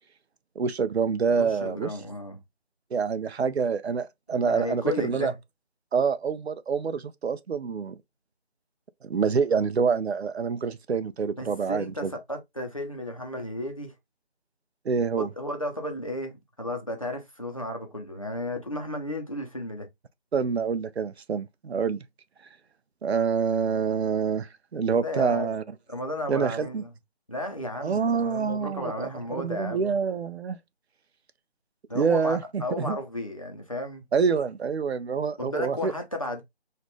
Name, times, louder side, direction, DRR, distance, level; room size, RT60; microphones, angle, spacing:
voice 1, 0.6-1.9 2.9-5.3 5.9-7.9 9.0-12.1 14.9-15.3 20.3-22.0 23.0-25.6 26.3-26.8 27.8-29.1 29.4-30.6 31.9-33.0 34.1-35.9, right 6 dB, 75° right, 0.5 m, -26 dB
voice 2, 1.4-2.4 4.3-5.3 11.4-13.9 15.2-19.9 25.0-25.6 25.9-26.9 27.3-29.9 31.9-34.0 35.4-36.4, left 1 dB, 30° left, 0.7 m, -34 dB
4.2 x 2.5 x 3.0 m
figure-of-eight pair, 170°, 33 cm